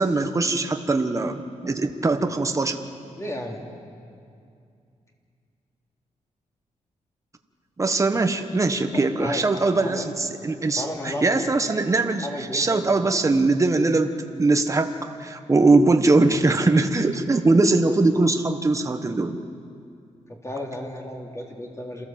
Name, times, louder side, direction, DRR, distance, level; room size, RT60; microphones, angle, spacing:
voice 1, 0.0-2.8 7.8-14.1 14.4-14.9 15.2-19.4, right 3 dB, 25° right, 6 dB, 1.3 m, -21 dB
voice 2, 3.2-3.6 8.9-10.1 10.8-11.3 12.1-12.9 13.2-13.5 20.3-22.0, left 1 dB, 25° left, 0 dB, 3.3 m, -33 dB
27.5 x 14.5 x 7.6 m, 2.4 s
cardioid pair, 105°, 13 cm